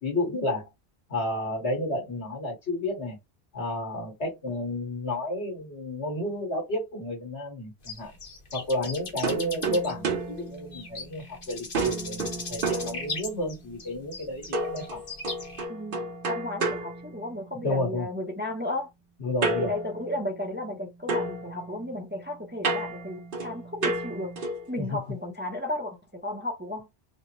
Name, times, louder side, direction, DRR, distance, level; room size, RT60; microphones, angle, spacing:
voice 1, 0.0-0.7 1.1-3.2 3.5-8.1 8.5-15.0 17.5-18.1 19.2-19.7 24.8-25.0, left 1 dB, 85° left, 2.3 m, -31 dB
sound 1, 7.8-15.6, left 3 dB, 55° left, 1.3 m, -38 dB
sound 2, 9.2-11.3 11.7-13.6 14.5-17.8 19.4-20.8 21.1-24.8, right 3 dB, 55° right, 1.0 m, -32 dB
voice 2, 15.7-18.9 19.6-24.3 24.7-26.9, left 1 dB, 10° right, 0.6 m, -34 dB
4.5 x 2.1 x 3.1 m
omnidirectional pair, 1.1 m